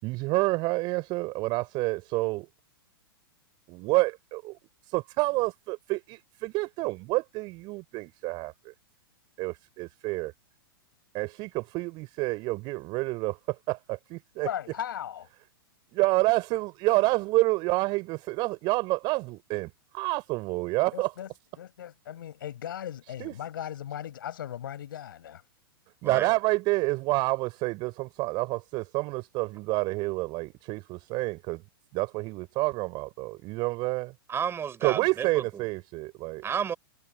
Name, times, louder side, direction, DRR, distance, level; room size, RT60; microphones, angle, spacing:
voice 1, 0.0-2.5 3.7-4.6 4.9-8.7 9.4-10.3 11.1-14.5 15.9-21.1 23.2-23.3 26.0-31.6 31.9-34.1 34.8-36.4, right 23 dB, 40° right, 4.5 m, -28 dB
voice 2, 14.4-15.3 20.9-21.3 21.6-25.4, left 10 dB, 60° left, 5.2 m, -37 dB
voice 3, 34.3-35.7 36.4-36.7, right 7 dB, 20° right, 6.0 m, -31 dB
figure-of-eight pair, 105°, 12 cm